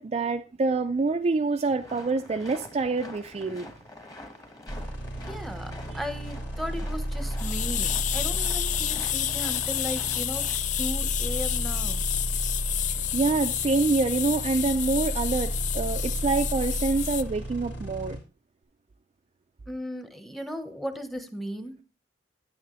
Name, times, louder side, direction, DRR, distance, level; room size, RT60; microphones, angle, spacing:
voice 1, 0.0-3.7 13.1-18.2, right 3 dB, 35° right, 0.4 m, -26 dB
sound 1, 1.8-10.6, left 1 dB, 20° left, 1.3 m, -46 dB
sound 2, 4.7-18.2, right 1 dB, 90° left, 3.3 m, -33 dB
voice 2, 5.1-10.5 10.8-12.0 19.7-21.8, equal, ahead, 0.9 m, -36 dB
sound 3, 7.4-17.2, left 12 dB, 45° left, 0.3 m, -30 dB
9.4 x 9.4 x 3.0 m
head